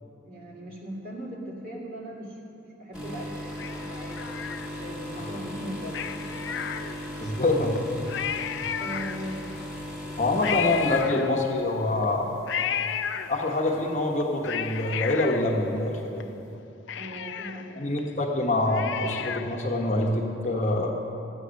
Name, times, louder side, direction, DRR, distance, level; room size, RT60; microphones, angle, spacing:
voice 1, 0.0-4.3 4.8-6.0 7.1-7.2 8.8-9.4 16.9-17.9, right 1 dB, 50° right, -4 dB, 2.4 m, -39 dB
sound 1, 2.9-12.1 12.5-12.8 13.7-13.8, left 1 dB, 5° right, 1.7 m, -37 dB
Cat, 3.6-5.0 5.9-7.3 7.7-7.8 8.1-9.6 10.4-11.8 12.5-13.7 14.2-16.2 16.5-16.6 16.9-19.7 20.0-20.1, left 8 dB, 80° left, 0.4 m, -33 dB
voice 2, 7.2-7.7 8.0-8.1 10.2-12.4 13.3-16.2 17.8-20.9, left 2 dB, 40° left, 0 dB, 1.1 m, -25 dB
13.5 x 8.2 x 6.4 m, 2.8 s
head